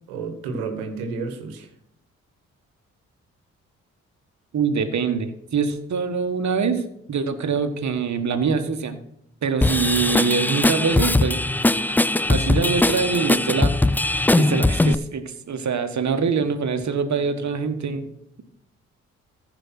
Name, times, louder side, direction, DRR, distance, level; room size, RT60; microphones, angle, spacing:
voice 1, 0.1-1.7, right 4 dB, 90° right, 6 dB, 1.5 m, -31 dB
voice 2, 4.5-9.0 9.4-11.4 11.9-12.0 12.3-13.7 14.4-18.1, right 5 dB, 50° right, 8 dB, 1.5 m, -24 dB
Drum kit / Drum, 9.6-14.9, left 2 dB, 5° left, 0.3 m, -20 dB
14.5 x 5.3 x 5.9 m, 0.74 s
hypercardioid pair, 45°, 35 cm